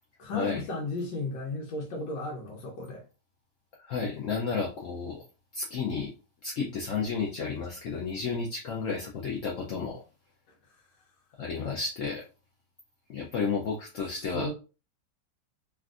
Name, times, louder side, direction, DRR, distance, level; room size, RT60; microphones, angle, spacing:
voice 1, 0.2-3.0 10.5-10.8 14.3-14.5, left 2 dB, 85° left, 1.5 m, -35 dB
voice 2, 3.8-5.2 5.5-6.1 6.4-10.0 11.4-12.3 13.1-14.5, left 5 dB, 65° left, 0.8 m, -32 dB
3.4 x 2.5 x 2.4 m
omnidirectional pair, 1.9 m